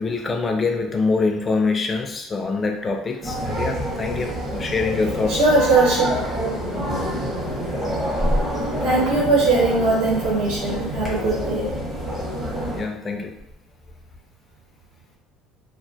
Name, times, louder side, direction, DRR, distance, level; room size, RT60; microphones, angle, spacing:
voice 1, 0.0-5.4 12.7-13.3, left 4 dB, 20° left, 4 dB, 0.3 m, -24 dB
sound 1, 3.2-12.8, equal, 20° right, 0.7 m, -27 dB
voice 2, 5.3-6.6 8.8-11.7, right 3 dB, 80° right, -4 dB, 1.0 m, -20 dB
2.4 x 2.1 x 2.6 m, 0.72 s
cardioid pair, 150°, 0 cm